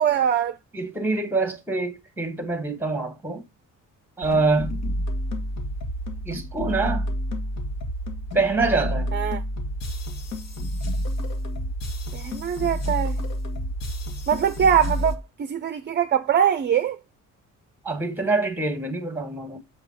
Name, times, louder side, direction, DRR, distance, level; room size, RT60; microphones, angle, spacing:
voice 1, 0.0-0.6 9.1-9.4 12.1-13.2 14.3-17.0, right 8 dB, 35° right, 0.5 m, -22 dB
voice 2, 0.7-3.4 4.2-4.8 6.2-7.1 8.3-9.1 17.8-19.6, right 3 dB, 5° right, 1.5 m, -25 dB
sound 1, 4.2-15.2, equal, 55° left, 1.7 m, -29 dB
7.4 x 3.9 x 5.7 m
cardioid pair, 165°, 32 cm